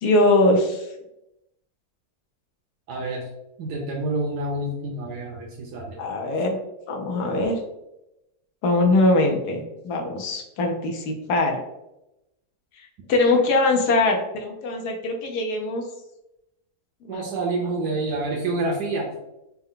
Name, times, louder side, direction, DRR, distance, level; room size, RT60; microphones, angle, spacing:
voice 1, 0.0-0.9 6.0-6.6 6.9-7.6 8.6-11.6 12.8-15.8 17.0-17.2, left 2 dB, 80° left, 3 dB, 1.3 m, -22 dB
voice 2, 2.9-3.3 3.6-6.0 17.1-19.1, right 2 dB, 85° right, -2 dB, 1.3 m, -28 dB
4.3 x 2.2 x 3.7 m, 0.89 s
omnidirectional pair, 1.7 m